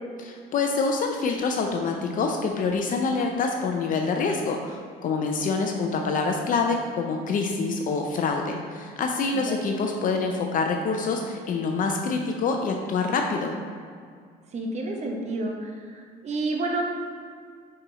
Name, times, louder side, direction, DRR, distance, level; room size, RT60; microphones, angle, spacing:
voice 1, 0.3-13.6, left 4 dB, 55° left, 3 dB, 0.6 m, -26 dB
voice 2, 9.3-9.6 14.5-16.8, right 2 dB, 40° right, 1 dB, 1.0 m, -30 dB
5.8 x 4.3 x 4.0 m, 2.1 s
cardioid pair, 110°, 17 cm